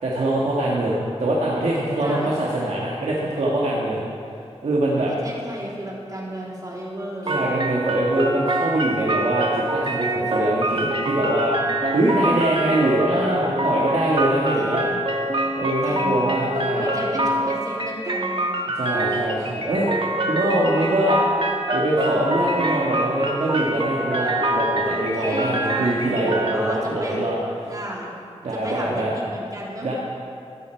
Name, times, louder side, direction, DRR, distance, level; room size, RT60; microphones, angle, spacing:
voice 1, 0.0-4.0 4.6-5.1 7.3-11.6 11.9-14.8 15.6-16.9 18.7-19.9 20.2-21.2 21.7-27.4 28.4-29.1 29.8-29.9, right 1 dB, 90° right, -5 dB, 1.6 m, -23 dB
voice 2, 2.0-2.4 5.1-7.3 14.6-15.0 15.8-16.3 16.7-18.6 24.8-27.2 27.6-28.1 28.5-29.9, right 1 dB, 35° right, -4 dB, 3.3 m, -33 dB
sound 1, 7.2-26.5, right 1 dB, 50° right, 1.4 m, -25 dB
15.0 x 12.0 x 4.5 m, 2.4 s
wide cardioid pair, 55°, 11 cm